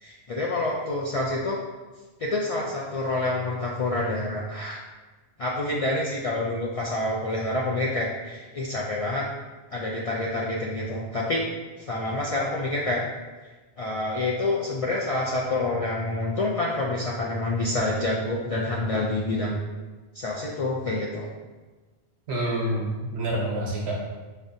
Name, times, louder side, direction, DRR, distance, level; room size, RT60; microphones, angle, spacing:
voice 1, 0.0-1.6 2.2-4.8 5.4-9.2 9.7-11.4 11.8-13.0 13.8-19.6 20.1-21.3, left 2 dB, 60° left, -4 dB, 0.3 m, -27 dB
voice 2, 22.3-24.1, right 1 dB, 85° right, -2 dB, 1.2 m, -27 dB
5.1 x 2.6 x 2.6 m, 1.3 s
omnidirectional pair, 1.1 m